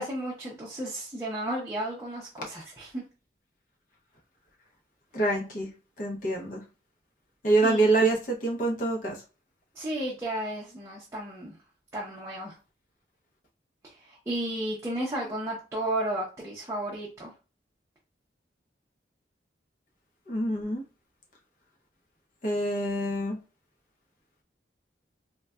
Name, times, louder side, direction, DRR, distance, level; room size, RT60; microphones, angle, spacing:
voice 1, 0.0-3.0 7.6-7.9 9.8-11.5 11.9-12.5 14.1-17.3, right 1 dB, 15° right, -5 dB, 0.6 m, -33 dB
voice 2, 5.1-5.7 6.0-6.6 7.4-9.2 20.3-20.8 22.4-23.4, right 2 dB, 45° left, -1 dB, 0.6 m, -26 dB
3.8 x 2.2 x 2.3 m, 0.33 s
head